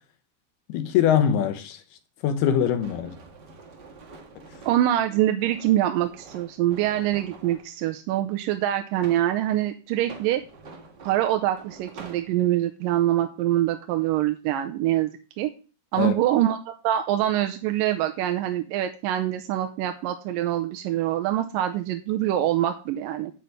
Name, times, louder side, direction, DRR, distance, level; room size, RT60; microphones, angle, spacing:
voice 1, 0.7-1.8 2.2-3.2 4.5-4.6 16.0-16.1, left 9 dB, 80° left, 3.0 m, -23 dB
sound 1, 2.7-7.7 8.5-9.3 10.0-12.3, right 4 dB, 50° right, 1.3 m, -46 dB
voice 2, 4.7-10.4 11.0-15.1 15.4-15.5 15.9-23.3, right 13 dB, 75° right, 2.1 m, -24 dB
9.4 x 5.7 x 8.1 m
omnidirectional pair, 4.6 m